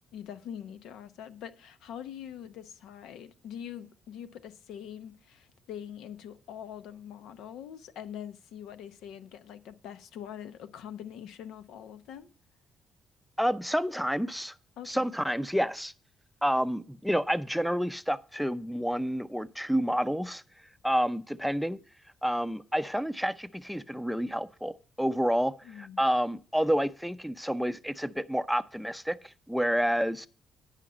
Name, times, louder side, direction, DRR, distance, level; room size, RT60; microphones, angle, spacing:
voice 1, 0.1-12.3 14.8-15.1 25.6-26.0, left 9 dB, 85° left, 0.7 m, -43 dB
voice 2, 13.4-14.5 14.9-15.9 16.4-20.4 20.8-21.8 22.2-30.3, equal, ahead, 0.5 m, -29 dB
9.9 x 5.8 x 5.0 m
cardioid pair, 90°, 0 cm